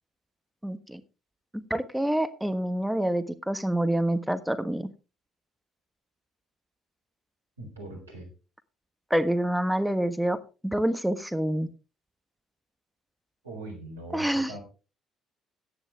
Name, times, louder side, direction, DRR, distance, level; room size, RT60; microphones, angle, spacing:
voice 1, 0.6-1.0 1.5-4.9 9.1-11.7 14.1-14.5, right 1 dB, 5° right, 11 dB, 1.3 m, -27 dB
voice 2, 7.6-8.3 13.4-14.6, right 2 dB, 90° right, 1 dB, 4.0 m, -41 dB
14.5 x 9.7 x 3.5 m, 0.32 s
hypercardioid pair, 50°, 0 cm